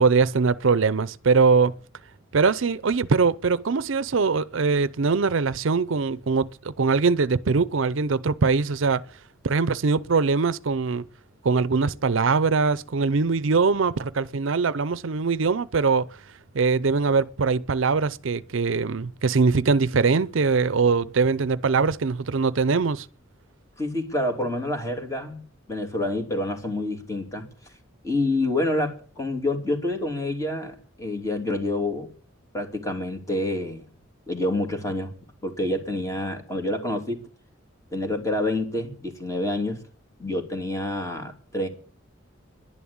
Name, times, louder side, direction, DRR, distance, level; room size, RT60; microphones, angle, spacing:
voice 1, 0.0-1.7 2.3-9.0 9.4-11.1 11.4-16.1 16.5-23.1, right 4 dB, 70° right, 0.6 m, -22 dB
voice 2, 23.8-25.4 25.7-27.5 28.0-32.1 32.5-33.8 34.3-35.1 35.4-37.2 37.9-39.8 40.2-41.7, left 1 dB, 15° left, 2.9 m, -27 dB
11.0 x 11.0 x 8.7 m
head